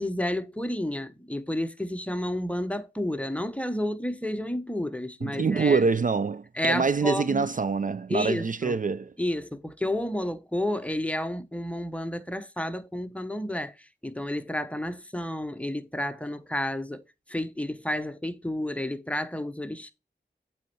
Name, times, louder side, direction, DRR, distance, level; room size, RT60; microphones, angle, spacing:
voice 1, 0.0-5.8 6.5-7.5 8.1-8.8 9.2-17.0 17.3-19.9, left 1 dB, 5° left, 0.9 m, -31 dB
voice 2, 5.2-9.1, right 4 dB, 45° right, 0.4 m, -25 dB
8.3 x 4.3 x 4.5 m
cardioid pair, 50°, 19 cm